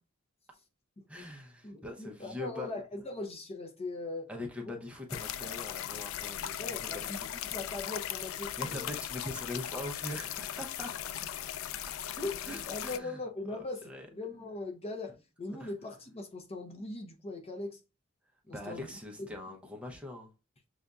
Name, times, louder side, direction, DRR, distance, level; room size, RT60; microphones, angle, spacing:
voice 1, 1.1-2.7 4.3-7.2 8.6-11.1 12.4-13.2 13.8-14.1 15.6-15.7 18.5-20.3, left 1 dB, 5° right, 0.7 m, -42 dB
voice 2, 1.6-4.3 4.6-4.7 6.6-8.9 12.2-17.8 18.5-19.3, left 2 dB, 30° left, 0.6 m, -40 dB
sound 1, 5.1-13.0, left 11 dB, 75° left, 0.3 m, -38 dB
6.5 x 2.6 x 2.3 m
head